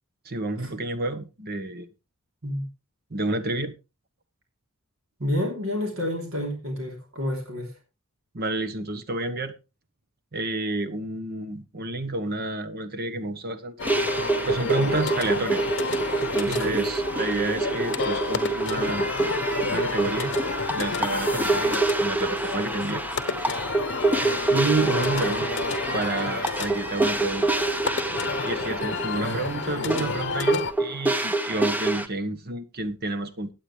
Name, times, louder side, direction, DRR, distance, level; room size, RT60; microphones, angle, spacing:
voice 1, 0.2-1.9 3.1-3.7 8.3-9.5 10.3-13.7 14.5-15.7 16.3-19.1 19.7-20.4 20.7-23.0 24.5-25.4 25.9-27.5 28.4-33.5, right 2 dB, 45° right, 1.1 m, -30 dB
voice 2, 5.2-7.7 14.7-15.0 16.5-16.9 24.9-25.5 25.9-26.0 26.5-26.6 29.1-29.4 29.7-30.1, left 1 dB, 70° right, 3.3 m, -30 dB
sound 1, 13.8-30.7, left 5 dB, 55° left, 0.8 m, -31 dB
sound 2, 13.8-32.1, right 2 dB, 10° right, 0.7 m, -27 dB
16.5 x 8.9 x 3.2 m
head